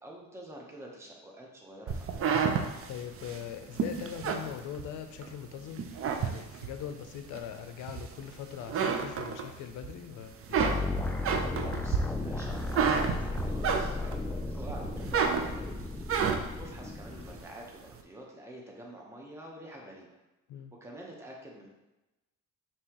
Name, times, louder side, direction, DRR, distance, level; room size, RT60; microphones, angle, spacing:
voice 1, 0.0-2.1 11.7-16.0 16.6-20.2 20.8-21.7, right 1 dB, 10° right, -1 dB, 0.9 m, -47 dB
sound 1, 1.9-5.3 5.7-6.8 7.3-8.3 8.6-9.9 10.2-14.2 14.7-16.6, right 6 dB, 50° right, 0.5 m, -30 dB
voice 2, 2.9-5.9 6.2-10.7 20.5-20.7, left 9 dB, 85° left, 8 dB, 0.5 m, -41 dB
sound 2, 10.6-17.4, left 2 dB, 5° left, 0.3 m, -35 dB
5.4 x 2.9 x 2.9 m, 1.0 s
cardioid pair, 90°, 30 cm